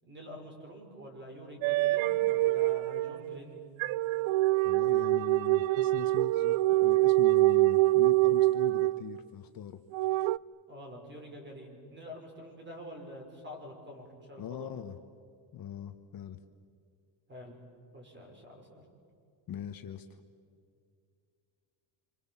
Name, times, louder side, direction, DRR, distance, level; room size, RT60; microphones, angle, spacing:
voice 1, 0.0-3.6 10.7-14.7 17.3-17.6 17.9-18.8, equal, 25° right, 1 dB, 6.1 m, -46 dB
sound 1, 1.6-9.2 9.9-10.4, right 19 dB, 80° right, 0.6 m, -25 dB
voice 2, 4.6-6.5 6.8-9.8 14.4-15.0 15.5-16.4 19.5-20.1, left 9 dB, 45° left, 7 dB, 1.3 m, -42 dB
27.0 x 27.0 x 7.4 m, 2.3 s
cardioid pair, 150°, 47 cm